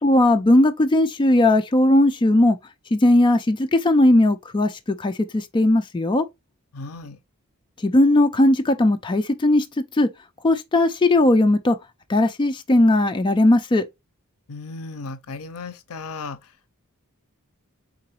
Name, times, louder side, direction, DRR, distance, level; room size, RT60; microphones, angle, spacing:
voice 1, 0.0-2.6 2.9-6.2 7.8-10.1 10.4-11.8 12.1-13.8, left 1 dB, 20° left, 0.4 m, -18 dB
voice 2, 6.7-7.2 14.5-16.7, left 3 dB, 75° left, 0.6 m, -36 dB
3.8 x 3.8 x 2.9 m
head